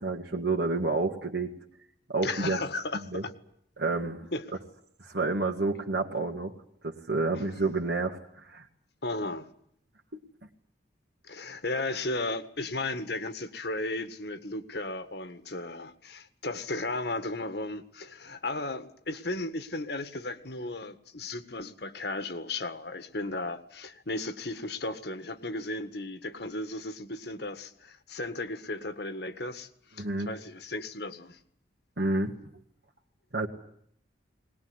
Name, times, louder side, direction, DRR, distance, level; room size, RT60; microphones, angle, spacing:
voice 1, 0.0-1.5 2.1-2.6 3.1-3.2 3.8-4.3 5.0-6.5 6.8-8.7 30.0-30.3 32.0-32.3 33.3-33.5, right 3 dB, 65° right, -1 dB, 2.2 m, -29 dB
voice 2, 2.2-3.3 4.3-4.4 7.4-7.5 9.0-9.5 11.2-31.4, left 2 dB, 60° left, 11 dB, 1.7 m, -35 dB
21.0 x 20.5 x 9.8 m, 0.67 s
head